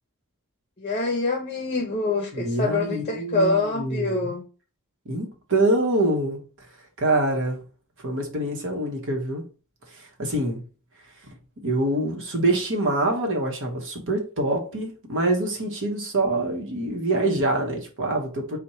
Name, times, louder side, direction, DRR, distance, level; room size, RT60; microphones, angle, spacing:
voice 1, 0.8-4.4, left 3 dB, 30° left, 0.6 m, -25 dB
voice 2, 2.3-4.3 5.0-6.4 7.0-7.6 8.0-9.4 10.0-10.6 11.6-18.6, right 2 dB, 60° right, 1.0 m, -25 dB
4.3 x 2.1 x 4.2 m
head